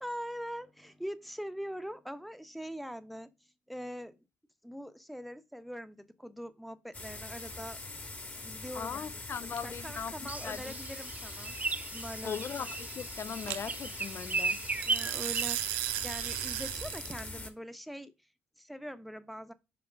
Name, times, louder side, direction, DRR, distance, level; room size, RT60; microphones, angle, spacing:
voice 1, 0.0-3.3 3.7-4.2 4.6-7.8 8.2-9.1 9.4-11.6 11.9-12.4 13.1-13.2 14.8-18.1 18.6-19.5, equal, ahead, 1.0 m, -42 dB
sound 1, 6.9-17.5, left 2 dB, 25° left, 1.7 m, -43 dB
voice 2, 8.7-10.1 10.4-10.7 12.2-14.6, left 7 dB, 45° left, 0.6 m, -39 dB
sound 2, 9.6-9.9 13.5-13.6 14.8-17.3, right 16 dB, 85° right, 0.4 m, -35 dB
sound 3, 10.3-16.7, right 3 dB, 25° right, 0.5 m, -37 dB
5.8 x 4.8 x 5.2 m
hypercardioid pair, 55°, 6 cm